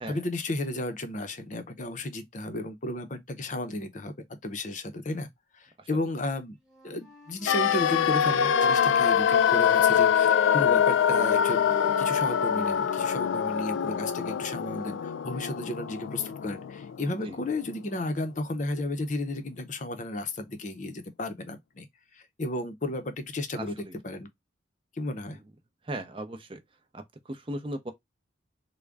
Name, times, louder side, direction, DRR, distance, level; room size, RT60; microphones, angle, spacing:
voice 1, 0.1-4.1 4.4-5.3 5.5-6.6 6.8-21.9 22.1-24.3 24.9-25.4, left 2 dB, 40° left, 0.6 m, -33 dB
Wind instrument woodwind instrument, 6.6-9.9 10.2-14.0, right 2 dB, ahead, 1.1 m, -44 dB
sound 1, 7.5-17.4 17.7-17.8, left 8 dB, 85° left, 0.3 m, -24 dB
voice 2, 23.5-23.9 25.9-26.6 26.9-27.0 27.3-27.9, right 1 dB, 30° right, 0.6 m, -36 dB
3.7 x 2.2 x 3.3 m
head